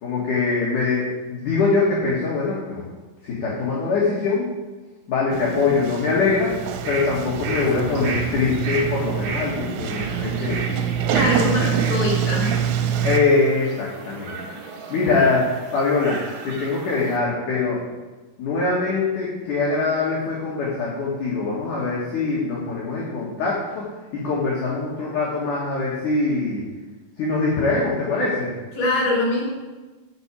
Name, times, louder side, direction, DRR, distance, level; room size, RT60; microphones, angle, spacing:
voice 1, 0.0-2.8 3.2-4.5 5.1-6.5 6.9-10.8 11.3-11.7 13.0-14.4 14.9-17.8 18.4-26.6 27.2-28.5, left 4 dB, 55° left, -5 dB, 2.6 m, -23 dB
Sliding door, 5.3-13.2, right 8 dB, 90° right, 3.3 m, -25 dB
sound 1, 6.5-17.2, right 4 dB, 60° right, 2.7 m, -34 dB
voice 2, 11.1-12.5 15.1-15.3 28.7-29.5, left 2 dB, 20° left, -4 dB, 3.5 m, -23 dB
8.1 x 7.3 x 8.5 m, 1.2 s
omnidirectional pair, 5.8 m